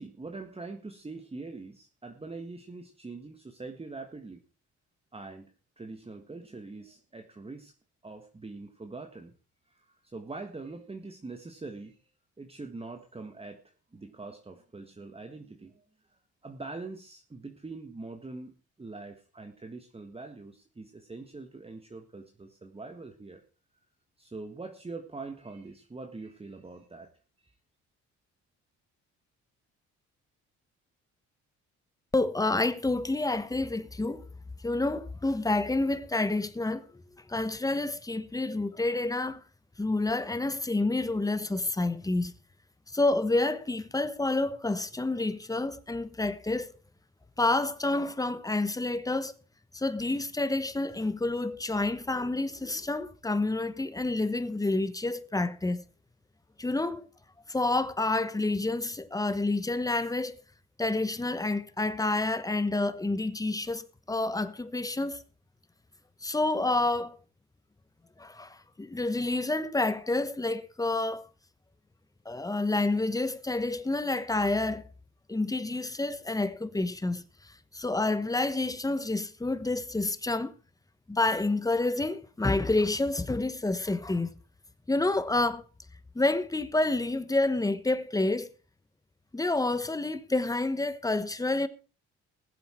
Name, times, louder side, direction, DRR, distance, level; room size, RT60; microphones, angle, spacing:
voice 1, 0.0-4.4 5.1-7.7 8.0-9.3 9.7-12.0 12.4-15.8 16.4-23.4 24.2-27.1 27.4-27.5, right 3 dB, 20° right, 1.6 m, -43 dB
voice 2, 32.1-34.3 34.6-36.8 37.3-39.4 39.8-42.3 42.9-46.7 47.4-49.3 49.7-55.8 56.6-57.1 57.5-60.4 60.8-65.2 66.2-67.1 68.2-71.2 72.2-74.9 75.3-77.2 77.7-80.5 81.1-84.3 84.9-85.6 86.1-88.5 89.3-91.7, left 2 dB, 10° left, 1.1 m, -29 dB
20.0 x 7.8 x 4.4 m
cardioid pair, 90°, 30 cm